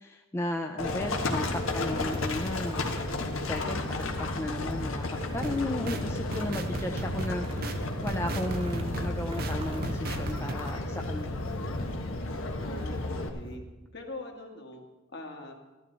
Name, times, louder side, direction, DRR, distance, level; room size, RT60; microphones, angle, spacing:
voice 1, 0.0-2.8 3.3-11.5, left 1 dB, 15° left, 2 dB, 0.5 m, -35 dB
Livestock farm animals working animals, 0.8-13.3, left 2 dB, 90° left, 1.4 m, -33 dB
sound 1, 3.7-4.4 4.8-5.6 5.9-6.6 6.9-11.9 12.3-13.6, right 1 dB, 30° right, 1.0 m, -47 dB
sound 2, 5.3-10.5, right 2 dB, 50° right, 0.7 m, -37 dB
voice 2, 12.6-13.6 13.9-14.8 15.1-15.5, left 1 dB, 55° left, 1 dB, 1.8 m, -42 dB
14.0 x 12.0 x 4.0 m, 1.1 s
head